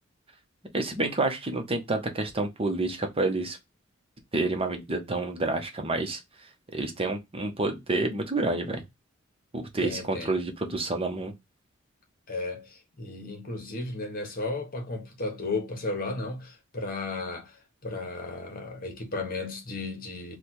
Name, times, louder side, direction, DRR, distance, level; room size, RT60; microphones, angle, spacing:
voice 1, 0.7-3.6 4.3-6.2 6.7-8.8 9.5-11.3, right 2 dB, 30° right, 0.9 m, -29 dB
voice 2, 9.8-10.3 12.3-17.6 17.8-20.4, left 3 dB, 45° left, 1.2 m, -34 dB
3.4 x 2.4 x 4.3 m
head